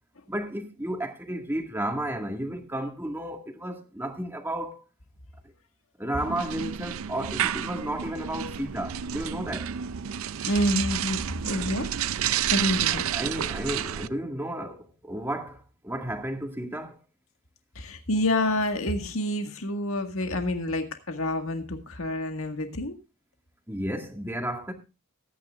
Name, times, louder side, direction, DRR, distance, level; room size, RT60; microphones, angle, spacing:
voice 1, 0.3-4.8 6.0-9.7 13.1-17.0 23.7-24.7, right 1 dB, 10° right, 1.9 m, -33 dB
sound 1, 6.2-14.1, right 9 dB, 75° right, 0.5 m, -30 dB
voice 2, 10.5-11.9 12.5-13.1 17.8-23.0, left 1 dB, 70° left, 1.8 m, -28 dB
22.0 x 9.6 x 2.5 m
head